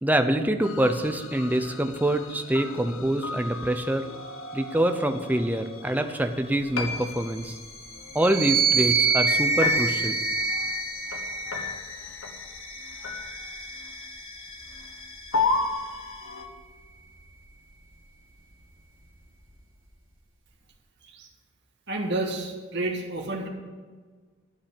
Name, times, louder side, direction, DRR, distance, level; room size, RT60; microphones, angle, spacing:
voice 1, 0.0-4.1 4.5-7.6 8.1-10.2, right 1 dB, 10° right, 7 dB, 0.6 m, -25 dB
sound 1, 0.6-16.5, left 4 dB, 75° left, 1.2 m, -34 dB
sound 2, 8.2-11.8 12.6-14.2, right 5 dB, 30° right, 3.4 m, -26 dB
voice 2, 21.9-23.5, right 2 dB, 55° right, -1 dB, 1.8 m, -30 dB
12.0 x 5.4 x 8.3 m, 1.5 s
head